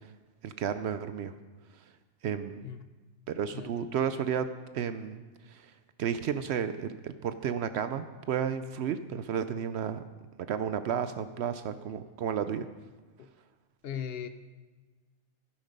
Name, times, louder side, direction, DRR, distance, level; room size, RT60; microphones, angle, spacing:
voice 1, 0.4-1.3 2.2-2.7 3.3-4.5 4.7-5.2 5.5-5.6 6.0-10.0 10.5-12.7, right 8 dB, 70° right, 11 dB, 0.8 m, -32 dB
voice 2, 3.5-4.0 13.2-13.3 13.8-14.3, left 8 dB, 60° left, 10 dB, 0.8 m, -39 dB
12.0 x 9.2 x 5.2 m, 1.3 s
omnidirectional pair, 1.2 m